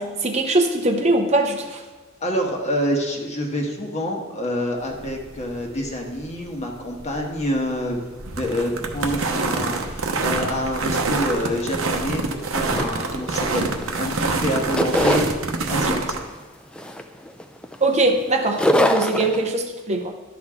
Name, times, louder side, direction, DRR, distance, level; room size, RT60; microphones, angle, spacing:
voice 1, 0.0-1.8 15.9-16.0 17.8-20.2, right 2 dB, 35° right, 4 dB, 0.6 m, -21 dB
voice 2, 2.2-15.3 15.7-16.2, equal, 35° left, 0 dB, 1.4 m, -27 dB
sound 1, 4.8-16.2, right 3 dB, 80° right, 0.9 m, -26 dB
sound 2, 12.7-13.9 14.2-15.3 15.9-16.2 16.8-18.1 18.4-19.5, left 1 dB, 5° left, 0.4 m, -22 dB
12.0 x 6.3 x 3.7 m, 1.4 s
head